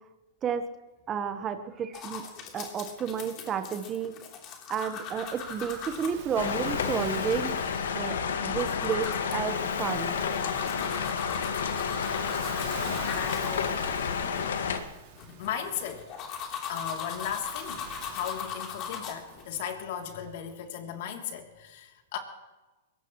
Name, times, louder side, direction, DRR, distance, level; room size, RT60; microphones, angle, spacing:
voice 1, 1.1-2.2 2.5-4.1 4.7-10.2, right 7 dB, 25° right, 8 dB, 1.2 m, -32 dB
sound 1, 1.9-19.4, left 7 dB, 35° left, 3.5 m, -40 dB
Waves surf, 4.9-20.4, right 9 dB, 50° right, 2.9 m, -48 dB
sound 2, 6.4-14.8, left 6 dB, 75° left, 1.9 m, -30 dB
voice 2, 12.4-14.0 15.1-16.1 16.7-22.2, left 8 dB, 60° left, 3 dB, 3.1 m, -37 dB
22.5 x 18.5 x 3.2 m, 1.1 s
hypercardioid pair, 120°, 0 cm